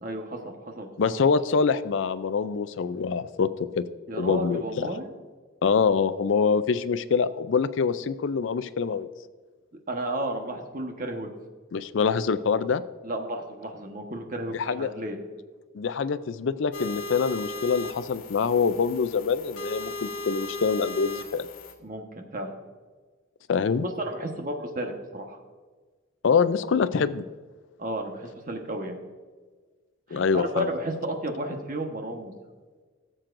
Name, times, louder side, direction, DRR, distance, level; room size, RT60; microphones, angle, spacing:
voice 1, 0.0-1.1 4.1-5.1 9.9-11.3 13.0-15.2 21.8-22.5 23.8-25.4 27.8-29.0 30.1-32.3, right 1 dB, 40° right, 3 dB, 1.2 m, -33 dB
voice 2, 1.0-3.5 3.8-3.9 4.2-4.9 5.6-9.1 11.7-12.8 14.5-14.9 15.7-21.5 23.5-23.9 26.2-27.2 30.1-30.7, left 5 dB, 65° left, 14 dB, 0.4 m, -25 dB
sound 1, 16.7-21.7, left 2 dB, 90° left, 1.3 m, -37 dB
17.5 x 7.5 x 2.6 m, 1.4 s
head